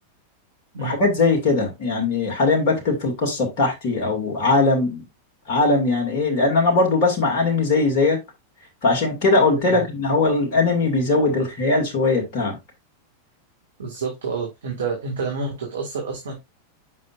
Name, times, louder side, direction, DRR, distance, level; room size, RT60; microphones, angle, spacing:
voice 1, 0.8-5.0 5.5-8.2 8.8-12.6, left 3 dB, 45° left, 2.2 m, -20 dB
voice 2, 13.8-16.4, right 4 dB, 65° right, 1.7 m, -28 dB
7.4 x 5.6 x 2.4 m
figure-of-eight pair, 90°, 0 cm